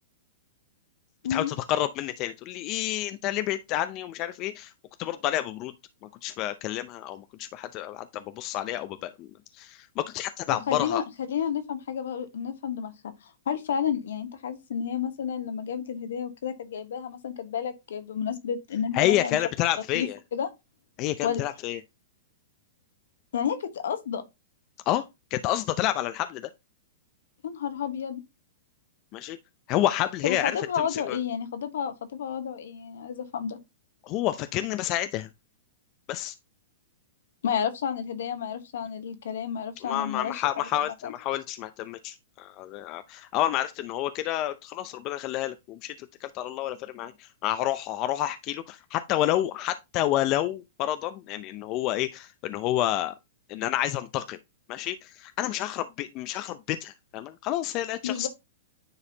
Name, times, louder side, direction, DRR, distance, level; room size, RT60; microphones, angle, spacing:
voice 1, 1.3-4.7 5.0-5.7 6.2-9.3 9.5-11.0 18.9-20.2 21.0-21.8 24.9-25.0 25.3-26.5 29.1-29.4 29.7-31.2 34.0-35.3 36.1-36.3 39.8-45.9 46.2-53.1 53.5-54.4 54.7-58.3, left 13 dB, 40° left, 0.5 m, -29 dB
voice 2, 10.7-11.0 11.3-12.9 13.5-19.4 19.9-20.5 21.2-21.4 23.3-24.2 27.4-28.2 30.2-33.6 37.4-40.4 41.0-41.1 58.0-58.3, left 8 dB, 75° left, 1.2 m, -31 dB
9.7 x 4.1 x 2.7 m
hypercardioid pair, 125°, 0 cm